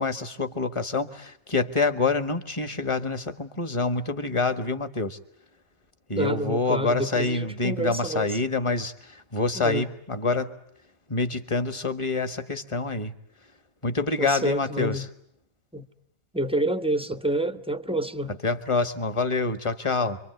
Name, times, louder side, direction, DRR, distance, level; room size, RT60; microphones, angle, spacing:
voice 1, 0.0-5.2 6.1-10.5 11.1-13.1 13.8-15.1 18.4-20.2, left 3 dB, 20° left, 1.5 m, -26 dB
voice 2, 6.1-8.3 9.5-9.8 14.2-15.1 15.7-15.9 16.3-18.3, right 1 dB, 5° right, 1.0 m, -28 dB
28.5 x 24.0 x 8.0 m
omnidirectional pair, 1.5 m